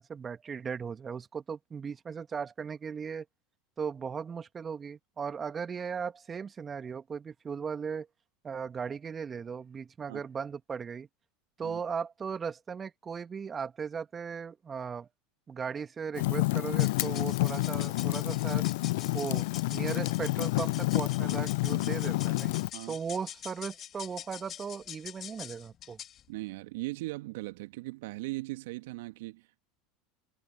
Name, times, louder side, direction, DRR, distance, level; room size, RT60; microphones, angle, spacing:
voice 1, 0.0-3.3 3.8-8.1 8.4-11.1 11.6-15.1 15.5-18.7 19.1-22.6 22.9-26.0, right 6 dB, 25° right, 1.9 m, -37 dB
Fire, 16.1-22.7, left 21 dB, 65° left, 0.3 m, -29 dB
sound 1, 16.8-26.2, left 10 dB, 40° left, 2.2 m, -45 dB
voice 2, 26.3-29.6, right 21 dB, 65° right, 1.7 m, -39 dB
hypercardioid pair, 80°, 0 cm